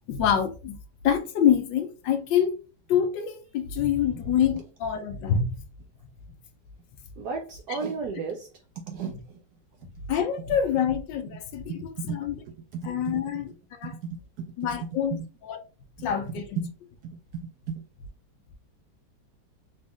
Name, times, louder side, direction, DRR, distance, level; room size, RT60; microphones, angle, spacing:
voice 1, 0.1-0.8 1.0-2.6 2.9-5.5 7.7-7.8 10.1-12.4 12.8-13.9 14.6-15.6 16.0-16.6, left 8 dB, 75° left, 1.2 m, -26 dB
voice 2, 7.2-8.5 8.8-9.4 11.7-12.2 12.5-13.2 13.8-14.5 15.1-15.3 16.0-16.7 17.0-17.8, right 5 dB, 70° right, 1.0 m, -35 dB
4.0 x 2.4 x 3.7 m
omnidirectional pair, 2.1 m